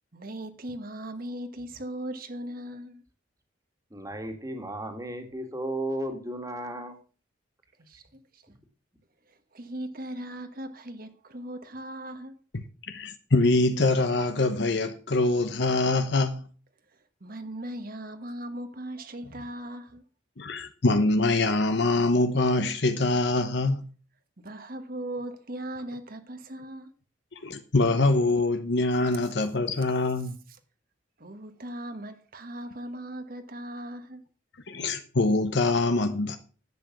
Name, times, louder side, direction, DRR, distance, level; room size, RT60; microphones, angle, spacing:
voice 1, 0.1-3.0 7.8-8.4 9.3-12.3 16.9-20.0 24.4-26.9 31.2-34.2, right 1 dB, 50° right, 1.3 m, -38 dB
voice 2, 3.9-7.0, right 1 dB, 15° right, 2.0 m, -34 dB
voice 3, 12.9-16.4 20.4-23.9 27.3-30.4 34.7-36.4, left 2 dB, 60° left, 1.0 m, -24 dB
11.0 x 7.7 x 6.0 m
head